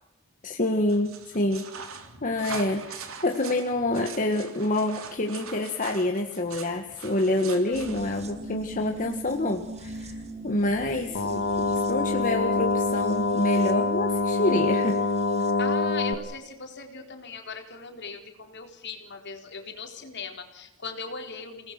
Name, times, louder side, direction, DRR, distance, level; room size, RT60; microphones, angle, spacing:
voice 1, 0.4-1.7 2.2-10.2 10.4-15.0, left 1 dB, 40° left, 3 dB, 1.8 m, -27 dB
sound 1, 0.9-8.0, right 6 dB, 85° right, 3.5 m, -42 dB
sound 2, 7.7-15.6 15.9-16.0, right 1 dB, 30° right, 2.5 m, -42 dB
sound 3, 11.1-16.1, left 3 dB, 80° left, 2.1 m, -25 dB
voice 2, 15.6-21.7, left 5 dB, 55° left, 4 dB, 3.9 m, -39 dB
29.5 x 19.5 x 6.1 m, 0.88 s
head